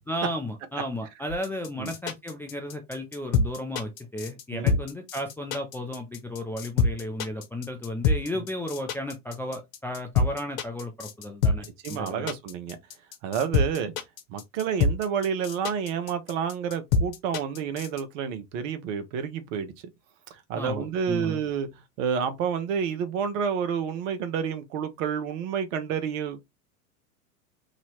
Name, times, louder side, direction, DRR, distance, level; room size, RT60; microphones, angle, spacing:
voice 1, 0.1-12.3 20.6-21.4, left 1 dB, 5° left, 0.4 m, -34 dB
sound 1, 1.3-18.0, left 4 dB, 65° left, 1.0 m, -26 dB
voice 2, 11.8-12.8 13.2-13.9 14.3-19.7 20.5-21.7 22.0-26.4, right 7 dB, 55° right, 1.0 m, -29 dB
3.1 x 2.8 x 4.2 m
hypercardioid pair, 95°, 44 cm